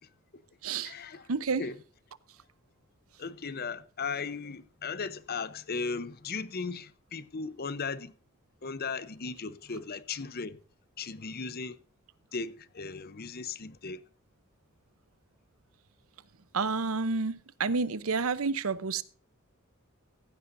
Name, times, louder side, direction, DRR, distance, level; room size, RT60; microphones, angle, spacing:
voice 1, 0.0-0.4 0.8-1.3 1.6-1.8 3.2-8.1 8.6-10.6 11.0-11.8 12.3-14.0, left 4 dB, 45° left, 0.8 m, -37 dB
voice 2, 0.6-0.9 1.3-1.6 16.5-19.0, right 4 dB, 80° right, 0.8 m, -29 dB
15.5 x 15.0 x 2.6 m
head